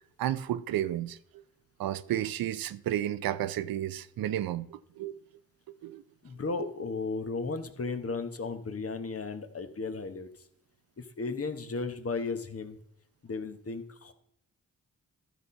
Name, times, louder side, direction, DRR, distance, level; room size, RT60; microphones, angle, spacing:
voice 1, 0.2-1.2 1.8-5.2 5.8-6.0, right 12 dB, 80° right, 0.5 m, -32 dB
voice 2, 6.2-10.3 11.0-12.8 13.2-14.1, left 4 dB, 40° left, 1.1 m, -35 dB
12.5 x 4.2 x 5.3 m
cardioid pair, 50°, 35 cm